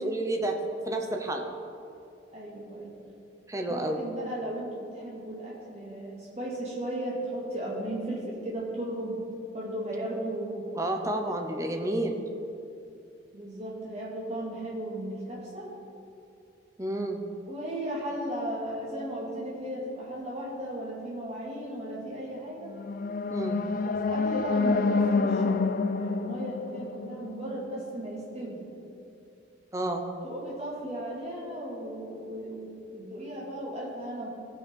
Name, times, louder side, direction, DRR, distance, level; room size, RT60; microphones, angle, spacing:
voice 1, 0.0-1.5 3.5-4.0 10.7-12.2 16.8-17.2 23.3-23.6 29.7-30.0, right 1 dB, 15° right, 3 dB, 0.8 m, -30 dB
voice 2, 2.3-2.9 3.7-9.2 9.5-10.7 11.2-11.3 13.3-15.7 17.5-22.7 23.8-28.7 30.2-34.3, right 1 dB, 35° right, -5 dB, 2.6 m, -36 dB
sound 1, 22.6-27.7, left 4 dB, 45° left, 0.4 m, -28 dB
15.5 x 5.7 x 5.5 m, 2.7 s
head